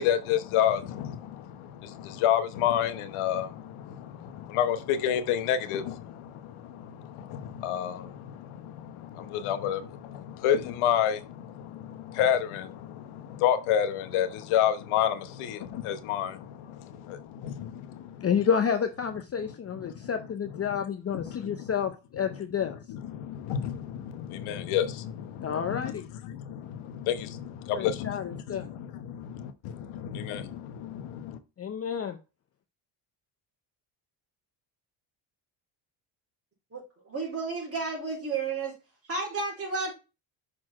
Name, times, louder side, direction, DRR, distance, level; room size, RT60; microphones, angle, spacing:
voice 1, 0.0-18.3 19.8-20.1 21.1-21.7 22.9-31.4, left 10 dB, 80° left, 1.0 m, -30 dB
voice 2, 18.2-22.8 25.4-26.0 27.7-28.7 31.6-32.2, left 7 dB, 30° left, 0.7 m, -29 dB
voice 3, 37.1-38.7 39.1-39.9, right 4 dB, 30° right, 3.7 m, -31 dB
6.4 x 4.3 x 4.3 m
cardioid pair, 100°, 49 cm